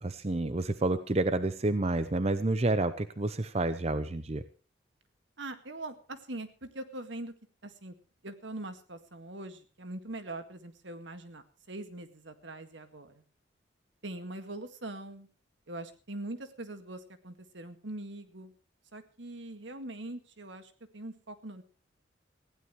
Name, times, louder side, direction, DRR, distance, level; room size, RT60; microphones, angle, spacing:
voice 1, 0.0-4.4, right 2 dB, 35° right, 12 dB, 0.7 m, -29 dB
voice 2, 5.4-7.3 7.6-7.9 8.2-13.1 14.0-15.3 15.7-18.5 18.9-21.6, right 2 dB, 75° right, 9 dB, 2.0 m, -42 dB
20.5 x 16.0 x 3.2 m, 0.36 s
head